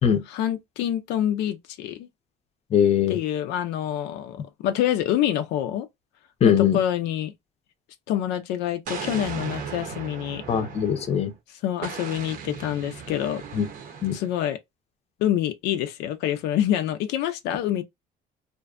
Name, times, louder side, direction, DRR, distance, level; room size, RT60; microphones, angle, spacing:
voice 1, 0.3-2.1 3.1-5.9 6.4-7.3 8.1-10.4 11.6-13.4 14.1-14.6 15.2-17.8, left 11 dB, 90° left, 0.4 m, -26 dB
voice 2, 2.7-3.2 6.4-6.8 10.5-11.3 13.5-13.7 14.0-14.2, left 8 dB, 40° left, 0.5 m, -21 dB
Explosion, 8.9-11.3 11.8-14.4, right 6 dB, 55° right, 0.6 m, -37 dB
2.5 x 2.2 x 2.3 m
cardioid pair, 110°, 17 cm